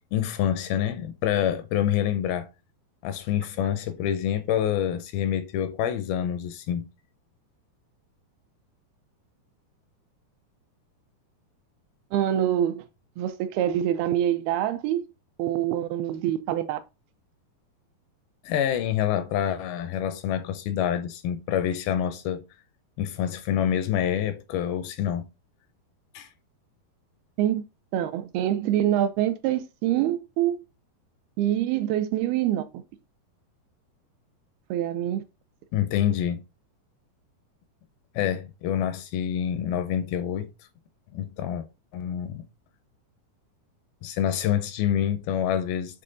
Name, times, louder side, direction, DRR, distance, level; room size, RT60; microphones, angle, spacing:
voice 1, 0.1-2.5 3.0-6.9 18.4-22.4 23.0-25.3 26.1-26.3 35.7-36.4 38.2-40.5 41.1-41.7 41.9-42.4 44.0-46.0, left 10 dB, 80° left, 2.3 m, -27 dB
voice 2, 12.1-12.8 13.2-15.1 15.4-16.8 27.4-27.6 27.9-30.6 31.4-32.6 34.7-35.2, right 11 dB, 80° right, 2.3 m, -25 dB
7.6 x 3.5 x 3.8 m
omnidirectional pair, 4.6 m